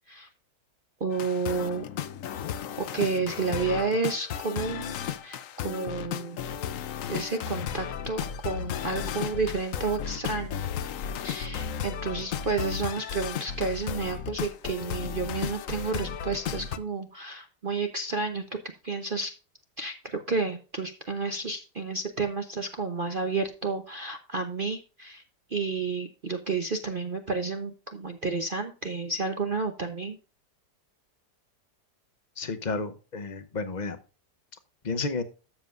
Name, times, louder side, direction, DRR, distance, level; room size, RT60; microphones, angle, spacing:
voice 1, 1.0-1.9 2.8-4.9 5.2-6.4 7.1-10.6 11.2-19.3 19.8-25.2 25.5-30.2, right 4 dB, 40° right, 0.8 m, -31 dB
sound 1, 1.1-16.8, left 8 dB, 60° left, 0.9 m, -34 dB
voice 2, 32.4-34.0 34.8-35.2, left 3 dB, 35° left, 0.8 m, -31 dB
13.0 x 7.4 x 2.5 m
omnidirectional pair, 1.8 m